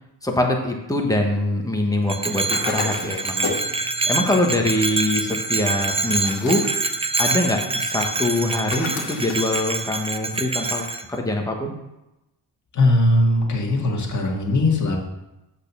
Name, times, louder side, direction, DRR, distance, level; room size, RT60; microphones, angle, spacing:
voice 1, 0.2-6.6 7.2-11.7, left 1 dB, 10° left, 1 dB, 1.3 m, -24 dB
Bell, 2.1-11.0, right 3 dB, 15° right, 0.5 m, -26 dB
sound 1, 2.5-3.7 6.1-6.8 8.7-9.6, left 4 dB, 70° left, 2.0 m, -32 dB
voice 2, 12.7-15.0, left 1 dB, 45° left, -1 dB, 2.0 m, -19 dB
8.2 x 4.4 x 6.9 m, 0.95 s
cardioid pair, 135°, 41 cm